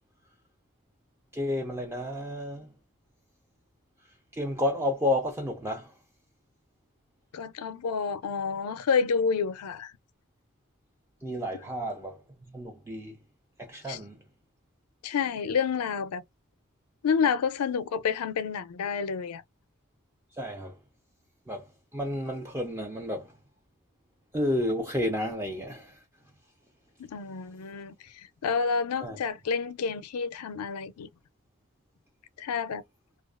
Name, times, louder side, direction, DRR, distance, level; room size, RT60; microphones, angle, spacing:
voice 1, 1.3-2.7 4.4-5.9 11.2-12.2 12.5-13.2 13.6-14.2 20.4-20.7 21.5-21.7 21.9-23.3 24.3-26.0 29.0-29.2, left 1 dB, 10° right, 0.4 m, -31 dB
voice 2, 7.3-9.9 13.9-14.0 15.0-16.2 17.0-19.4 27.0-27.9 28.4-31.1 32.4-32.8, left 6 dB, 85° left, 0.4 m, -29 dB
2.4 x 2.3 x 2.3 m
head